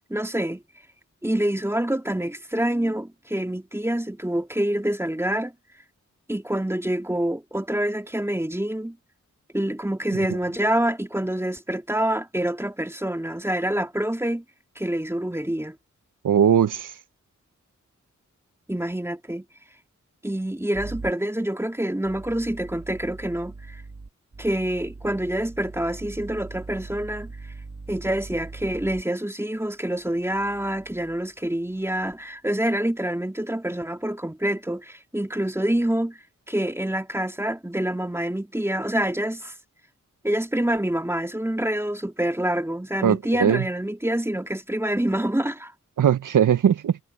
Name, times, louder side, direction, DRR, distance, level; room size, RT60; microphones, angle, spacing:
voice 1, 0.1-0.6 1.2-5.5 6.3-9.0 9.5-14.4 14.8-15.7 18.7-19.4 20.2-23.8 24.4-27.3 27.9-36.2 36.5-39.5 40.2-45.7, right 1 dB, 10° right, 2.4 m, -26 dB
voice 2, 16.2-17.0 43.0-43.6 46.0-47.0, right 8 dB, 85° right, 0.7 m, -20 dB
sound 1, 20.7-21.1 22.0-29.0 30.1-31.3 31.8-32.2, right 3 dB, 50° right, 2.1 m, -41 dB
cardioid pair, 50°, 31 cm